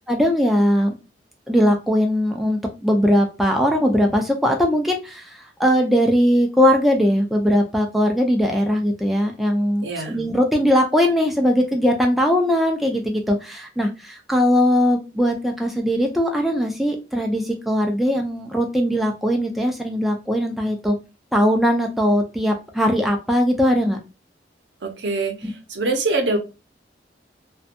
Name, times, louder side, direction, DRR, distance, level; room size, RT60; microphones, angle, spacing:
voice 1, 0.1-0.9 1.5-5.2 5.6-21.0 21.3-24.0 25.4-25.5, equal, ahead, 1 dB, 0.3 m, -20 dB
voice 2, 9.8-10.2 24.8-26.4, right 3 dB, 75° right, 5 dB, 0.6 m, -24 dB
2.6 x 2.2 x 2.5 m, 0.28 s
head